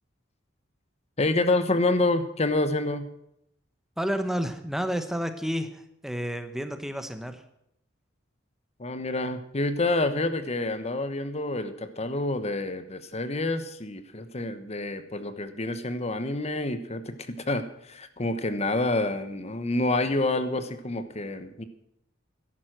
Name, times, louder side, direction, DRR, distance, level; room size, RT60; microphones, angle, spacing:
voice 1, 1.2-3.1 8.8-21.6, left 2 dB, 35° left, 10 dB, 1.1 m, -28 dB
voice 2, 4.0-7.4, equal, ahead, 8 dB, 1.1 m, -30 dB
14.0 x 11.5 x 6.0 m, 0.76 s
head